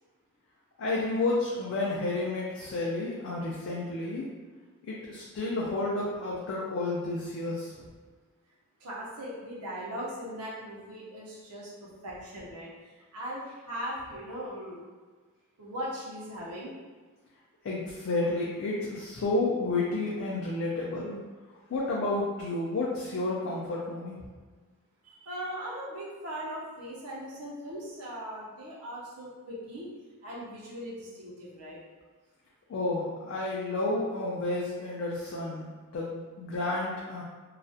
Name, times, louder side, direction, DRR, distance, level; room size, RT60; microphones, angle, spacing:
voice 1, 0.8-4.3 4.8-7.8 17.6-21.2 21.7-24.3 32.7-37.2, left 2 dB, 55° left, -5 dB, 0.3 m, -31 dB
voice 2, 8.8-14.8 15.6-16.7 25.0-29.9 30.2-31.8, equal, 85° right, -5 dB, 0.6 m, -39 dB
2.3 x 2.0 x 2.6 m, 1.4 s
head